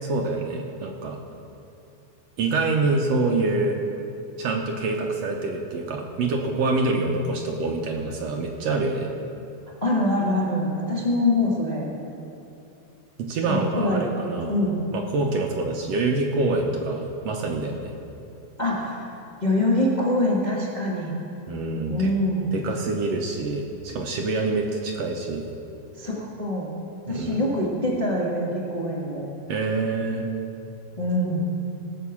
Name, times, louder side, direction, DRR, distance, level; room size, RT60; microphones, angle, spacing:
voice 1, 0.0-1.2 2.4-3.8 4.4-9.1 13.2-14.6 14.9-17.9 21.5-22.1 22.5-25.5 27.1-27.4 29.5-30.3, right 3 dB, 70° right, 2 dB, 1.8 m, -26 dB
voice 2, 9.8-11.9 13.5-14.8 18.6-19.0 19.4-21.1 21.9-22.5 26.0-26.7 27.1-29.2 31.0-31.4, left 1 dB, 25° left, -5 dB, 1.0 m, -24 dB
17.5 x 5.9 x 7.2 m, 2.8 s
omnidirectional pair, 3.4 m